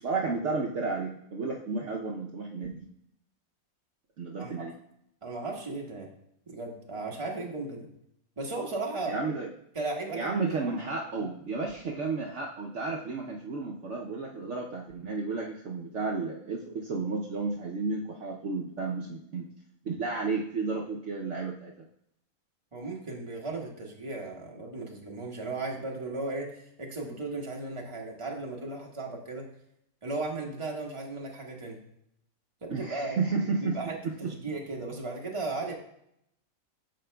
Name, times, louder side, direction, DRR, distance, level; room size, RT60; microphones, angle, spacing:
voice 1, 0.0-2.8 4.2-4.7 9.1-9.5 10.1-19.5 19.8-21.7 32.7-34.3, right 4 dB, 60° right, -1 dB, 0.9 m, -32 dB
voice 2, 5.2-6.1 6.5-7.9 8.4-9.2 9.7-10.8 11.2-11.3 22.7-29.5 30.0-31.8 32.6-33.2 33.6-33.9 34.2-35.7, right 3 dB, 20° right, -1 dB, 1.2 m, -36 dB
12.5 x 4.6 x 2.2 m, 0.75 s
omnidirectional pair, 1.5 m